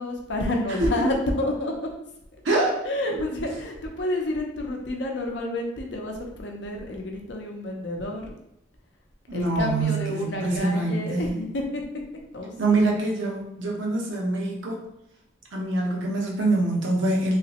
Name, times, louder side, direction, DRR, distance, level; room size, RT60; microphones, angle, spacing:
voice 1, 0.0-1.7 2.8-8.3 9.3-11.8 12.3-12.8, left 1 dB, 65° left, 1 dB, 0.7 m, -29 dB
voice 2, 2.4-2.8 9.3-11.3 12.6-14.8 15.5-17.4, right 2 dB, 75° right, -1 dB, 0.8 m, -24 dB
3.2 x 3.0 x 2.9 m, 0.81 s
head